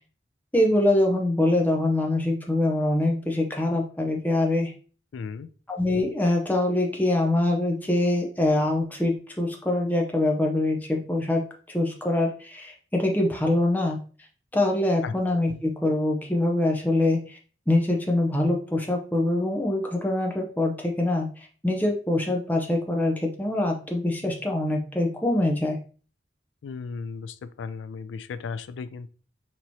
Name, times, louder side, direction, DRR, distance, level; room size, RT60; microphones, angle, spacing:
voice 1, 0.5-4.7 5.7-11.5 11.7-14.0 14.5-17.4 17.7-21.3 21.6-25.8, left 1 dB, 10° left, 1 dB, 0.6 m, -24 dB
voice 2, 5.1-5.5 15.0-15.1 26.6-29.1, left 5 dB, 90° left, 14 dB, 0.3 m, -35 dB
4.4 x 2.9 x 2.7 m, 0.39 s
head